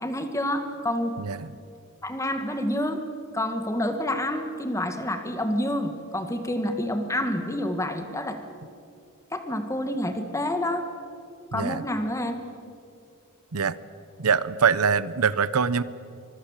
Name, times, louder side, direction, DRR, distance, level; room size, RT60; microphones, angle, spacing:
voice 1, 0.0-1.2 2.0-3.0 3.3-8.4 9.3-10.9 11.5-12.4, left 1 dB, 15° left, 7 dB, 1.7 m, -28 dB
voice 2, 1.2-1.5 11.5-11.8 13.5-13.8 14.2-15.8, right 6 dB, 90° right, 17 dB, 0.8 m, -23 dB
25.0 x 22.5 x 7.4 m, 2.5 s
head